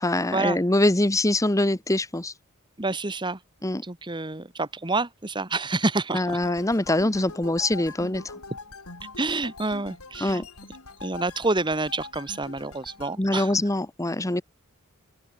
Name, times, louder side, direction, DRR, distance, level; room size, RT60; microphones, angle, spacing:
voice 1, 0.0-2.3 3.6-3.8 6.1-8.3 10.2-10.5 13.2-14.4, left 1 dB, 15° left, 1.1 m, -24 dB
voice 2, 2.8-3.4 3.8-6.2 9.2-10.4 11.0-13.5, right 3 dB, 20° right, 1.5 m, -28 dB
sound 1, 6.3-13.2, left 3 dB, 85° left, 6.3 m, -43 dB
open air
head